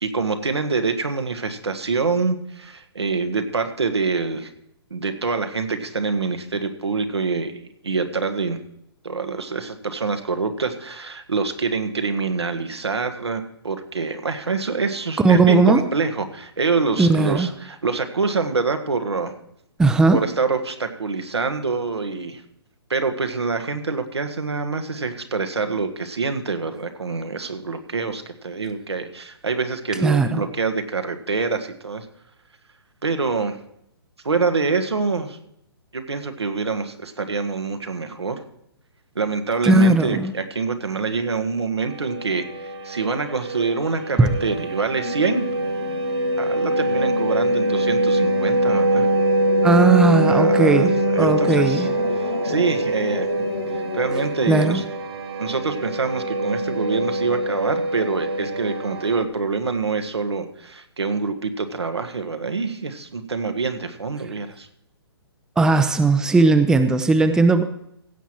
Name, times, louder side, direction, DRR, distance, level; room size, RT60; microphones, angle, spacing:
voice 1, 0.0-4.5 4.9-8.6 9.0-19.3 20.1-22.4 22.9-32.1 33.0-33.6 34.2-35.4 35.9-38.4 39.1-45.4 46.4-49.1 50.3-50.9 51.1-51.9 52.1-53.3 53.7-54.8 55.4-64.7, right 4 dB, 85° right, 6 dB, 1.5 m, -25 dB
voice 2, 15.2-15.8 17.0-17.5 19.8-20.2 30.0-30.4 39.6-40.3 44.2-44.3 49.6-51.9 54.5-54.8 65.6-67.6, right 3 dB, 5° right, 9 dB, 0.6 m, -17 dB
sound 1, 41.9-59.2, right 1 dB, 70° right, 1.7 m, -23 dB
sound 2, 44.4-54.8, left 5 dB, 75° left, 1.5 m, -32 dB
16.0 x 7.2 x 4.5 m, 0.75 s
figure-of-eight pair, 135°, 14 cm